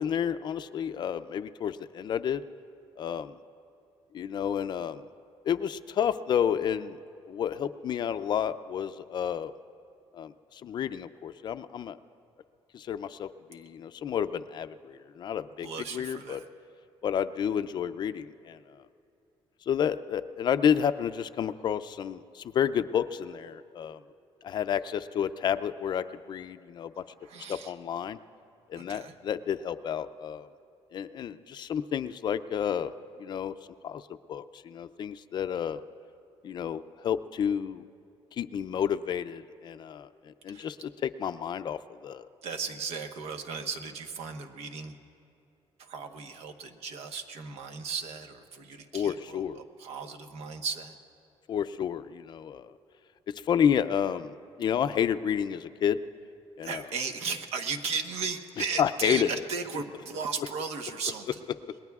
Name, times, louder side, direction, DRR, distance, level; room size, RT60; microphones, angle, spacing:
voice 1, 0.0-2.4 3.0-3.4 4.1-5.0 5.4-7.0 7.3-9.5 10.1-12.0 12.7-15.7 15.9-16.4 17.0-18.6 19.7-24.0 24.4-27.0 27.5-28.2 28.7-30.5 30.9-32.9 33.2-33.5 33.8-34.0 34.3-35.8 36.4-37.8 38.3-40.8 41.0-42.3 48.9-49.6 51.5-52.7 53.5-56.0 56.6-56.8 58.8-59.3, left 8 dB, 45° left, 12 dB, 0.4 m, -30 dB
voice 2, 15.6-16.5 27.0-27.7 28.7-29.2 40.5-40.7 42.4-45.0 45.8-51.0 56.6-61.4, right 5 dB, 80° right, 5 dB, 1.1 m, -36 dB
28.0 x 21.0 x 2.4 m, 2.6 s
cardioid pair, 155°, 11 cm